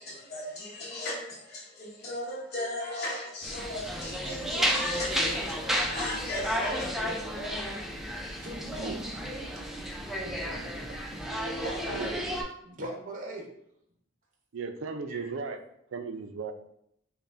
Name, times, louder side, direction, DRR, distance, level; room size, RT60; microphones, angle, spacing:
voice 1, 0.0-6.9, left 1 dB, 55° left, 0.9 m, -37 dB
sound 1, 3.4-12.4, equal, ahead, 0.4 m, -32 dB
voice 2, 8.4-9.6 10.2-11.0 11.6-12.3 12.6-13.5 15.1-15.2, right 1 dB, 40° right, 0.7 m, -40 dB
voice 3, 14.5-15.6 15.9-16.5, right 4 dB, 80° right, 0.4 m, -36 dB
5.3 x 2.1 x 2.5 m
head